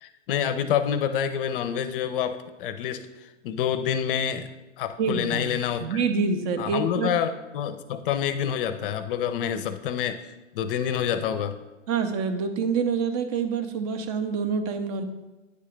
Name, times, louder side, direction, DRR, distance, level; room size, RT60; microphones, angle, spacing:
voice 1, 0.0-3.1 3.4-4.5 4.8-6.0 6.6-10.2 10.5-11.6, left 8 dB, 45° left, 11 dB, 0.6 m, -27 dB
voice 2, 5.0-5.5 5.8-7.1 11.9-15.0, right 5 dB, 30° right, 8 dB, 0.6 m, -26 dB
9.5 x 3.7 x 3.3 m, 1.1 s
hypercardioid pair, 115°, 38 cm